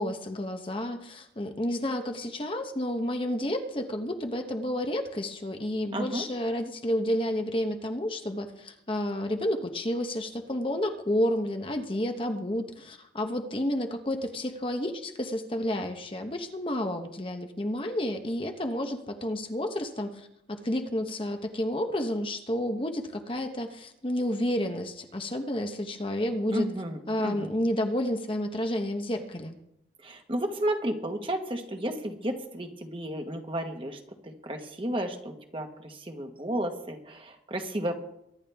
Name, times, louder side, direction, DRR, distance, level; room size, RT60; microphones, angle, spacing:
voice 1, 0.0-26.7 27.1-29.6, left 1 dB, 30° left, 5 dB, 1.0 m, -30 dB
voice 2, 5.9-6.2 26.5-27.5 30.0-37.9, right 1 dB, 30° right, 4 dB, 1.5 m, -33 dB
23.0 x 10.5 x 3.5 m, 0.81 s
head